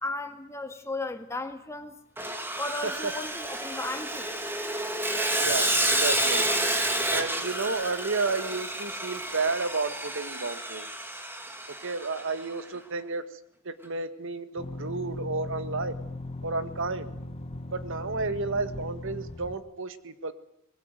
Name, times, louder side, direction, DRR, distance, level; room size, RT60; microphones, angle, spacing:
voice 1, 0.0-2.0 2.6-4.3, left 2 dB, 15° left, 6 dB, 2.1 m, -35 dB
Sawing, 2.2-12.4, right 1 dB, 10° right, 2.1 m, -30 dB
voice 2, 5.4-6.5 7.1-10.9 11.8-13.4 13.6-15.9 16.4-17.1 17.7-20.3, right 3 dB, 65° right, 12 dB, 1.7 m, -31 dB
sound 1, 14.6-19.6, left 1 dB, 30° left, 1.4 m, -38 dB
22.0 x 21.0 x 9.2 m, 0.76 s
head